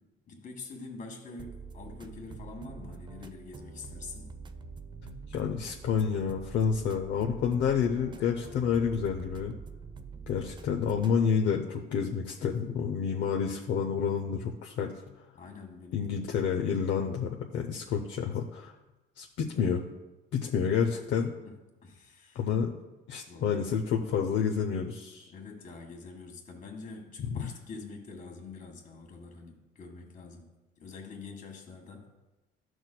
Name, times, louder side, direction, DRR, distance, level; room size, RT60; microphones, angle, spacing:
voice 1, 0.3-4.4 10.1-10.2 15.3-16.2 21.1-21.6 21.8-22.4 23.3-23.6 25.3-30.5 30.8-32.1, left 3 dB, 40° left, 2 dB, 1.7 m, -45 dB
sound 1, 1.4-11.2, right 5 dB, 20° right, 0.4 m, -46 dB
voice 2, 5.0-9.5 10.3-14.9 15.9-18.7 19.2-19.8 20.3-21.3 22.3-22.7 23.1-25.3 27.2-27.5, left 7 dB, 60° left, 1 dB, 0.7 m, -29 dB
12.5 x 6.2 x 2.2 m, 1.1 s
cardioid pair, 130°, 21 cm